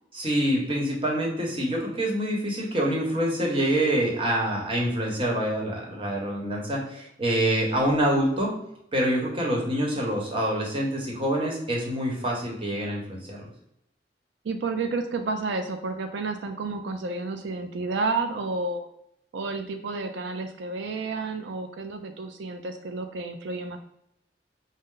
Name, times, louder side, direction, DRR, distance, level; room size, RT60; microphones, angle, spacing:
voice 1, 0.1-8.6 8.9-13.5, right 1 dB, 30° right, -2 dB, 1.0 m, -26 dB
voice 2, 14.4-18.9 19.3-23.8, right 3 dB, 90° right, 6 dB, 0.4 m, -31 dB
5.3 x 2.1 x 3.7 m, 0.78 s
head